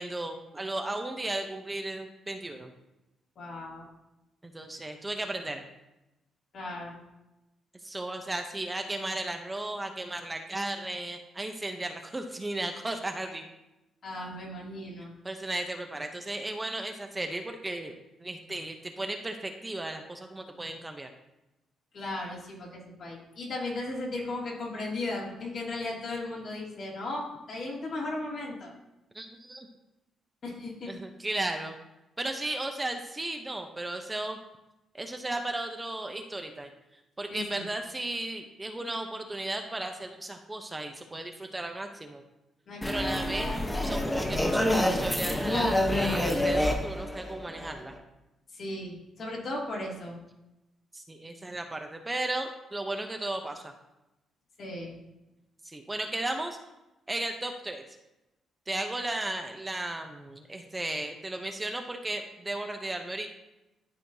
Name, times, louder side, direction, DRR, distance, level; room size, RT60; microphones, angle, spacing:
voice 1, 0.0-2.7 4.4-5.6 7.8-13.4 15.2-17.9 18.2-21.1 29.1-29.7 30.9-31.8 32.2-34.4 34.9-36.7 37.2-42.2 42.9-47.9 50.9-53.7 55.6-56.6 57.1-57.8 58.7-63.4, right 2 dB, 15° right, 5 dB, 0.7 m, -35 dB
voice 2, 3.4-3.9 6.5-7.0 14.0-15.1 21.9-27.2 27.5-28.7 30.4-30.9 37.3-37.6 42.7-43.3 48.5-50.1 54.6-55.0, left 2 dB, 60° left, -4 dB, 2.6 m, -36 dB
sound 1, 42.8-48.0, left 1 dB, 15° left, 1.0 m, -27 dB
12.0 x 4.3 x 2.7 m, 0.95 s
cardioid pair, 90°, 0 cm